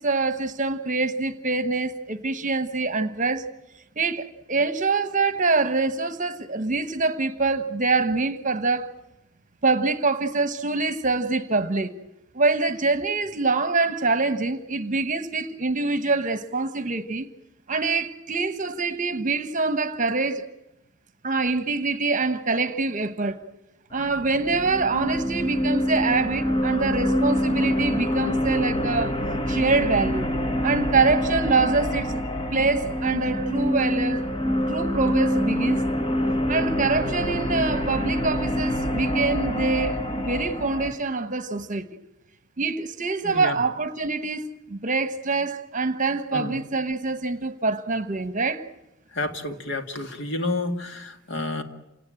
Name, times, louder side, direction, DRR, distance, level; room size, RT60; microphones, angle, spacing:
voice 1, 0.0-3.5 4.0-8.9 9.6-11.9 12.3-17.3 17.7-20.5 21.2-23.4 23.9-29.1 29.5-30.3 30.6-32.1 32.5-35.8 36.5-41.9 42.6-48.7, right 3 dB, 40° right, 1.2 m, -25 dB
sound 1, 23.9-40.9, equal, 25° left, 1.3 m, -26 dB
voice 2, 43.2-43.6 46.3-46.5 49.1-51.6, left 2 dB, 65° left, 2.1 m, -30 dB
28.5 x 18.0 x 9.0 m
head